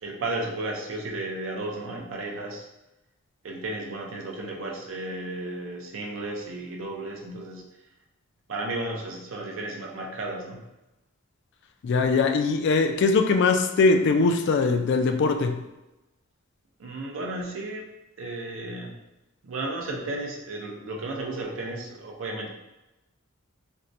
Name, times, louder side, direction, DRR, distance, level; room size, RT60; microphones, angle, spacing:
voice 1, 0.0-2.7 3.4-7.7 8.5-10.7 16.8-17.9 18.2-18.9 19.4-22.5, right 2 dB, 65° right, 0 dB, 0.5 m, -33 dB
voice 2, 11.8-15.6, left 4 dB, 60° left, 7 dB, 0.3 m, -21 dB
4.3 x 2.1 x 2.5 m, 0.98 s
head